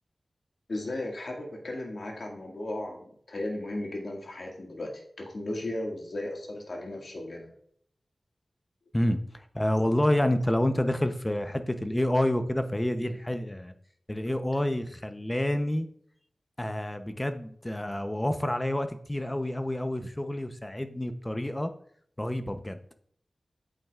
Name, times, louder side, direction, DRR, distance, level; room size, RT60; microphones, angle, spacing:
voice 1, 0.7-7.5, left 1 dB, 65° left, 0 dB, 2.0 m, -36 dB
voice 2, 8.9-13.7 14.1-15.9 16.6-21.7 22.2-22.8, left 1 dB, 15° left, 8 dB, 0.7 m, -28 dB
8.4 x 7.4 x 2.4 m, 0.63 s
wide cardioid pair, 65°, 0 cm